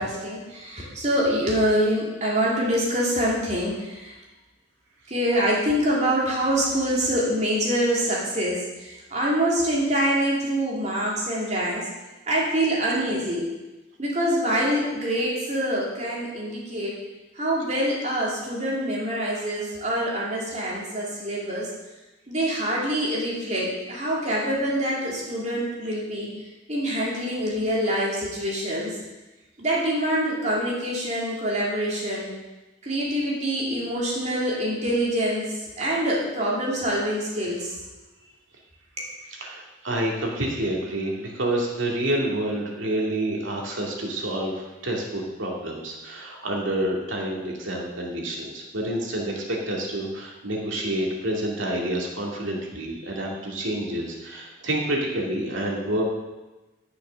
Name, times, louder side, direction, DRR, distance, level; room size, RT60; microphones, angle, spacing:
voice 1, 0.0-4.1 5.1-11.9 12.3-13.4 14.0-16.9 17.4-21.7 22.3-26.3 26.7-28.9 29.6-32.3 32.8-37.7, equal, 35° right, -5 dB, 2.8 m, -25 dB
voice 2, 39.4-56.0, right 1 dB, 80° right, -2 dB, 2.4 m, -28 dB
11.0 x 6.5 x 6.3 m, 1.1 s
head